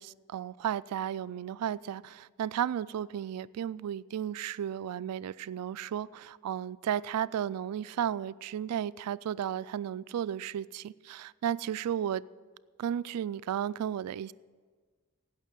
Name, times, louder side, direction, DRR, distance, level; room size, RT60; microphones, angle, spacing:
voice 1, 0.0-12.2 12.8-14.3, right 9 dB, 90° right, 0.3 m, -34 dB
16.0 x 6.1 x 7.4 m
head